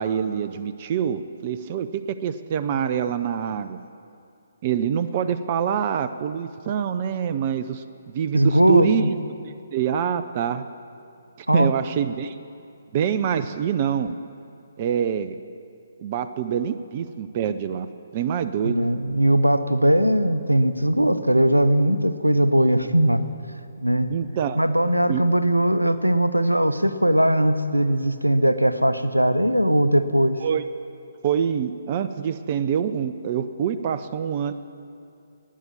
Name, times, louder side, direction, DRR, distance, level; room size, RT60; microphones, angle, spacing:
voice 1, 0.0-3.8 4.6-7.8 8.1-9.2 9.7-10.6 11.5-12.4 12.9-14.2 14.8-15.3 16.0-17.9 18.1-18.8 24.1-24.6 25.1-25.2 30.4-30.6 31.2-34.5, right 8 dB, 35° right, 12 dB, 0.5 m, -25 dB
voice 2, 8.3-9.1 11.5-11.7 18.6-23.2 23.8-24.1 24.5-30.4, right 1 dB, 85° right, 12 dB, 0.7 m, -19 dB
12.5 x 9.6 x 8.8 m, 2.6 s
figure-of-eight pair, 135°, 0 cm